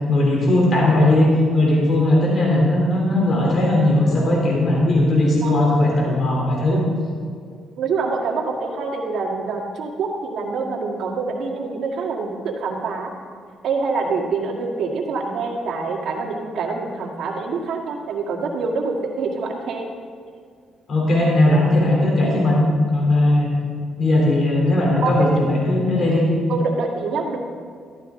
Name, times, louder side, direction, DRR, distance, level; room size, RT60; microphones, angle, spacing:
voice 1, 0.1-6.8 20.9-22.6 22.9-23.5 24.0-26.3, left 1 dB, 50° left, -3 dB, 3.5 m, -18 dB
voice 2, 7.8-13.1 13.6-19.9 25.0-25.3 26.5-27.4, right 4 dB, 70° right, 0 dB, 2.0 m, -25 dB
14.0 x 12.5 x 3.9 m, 2.1 s
cardioid pair, 90°, 0 cm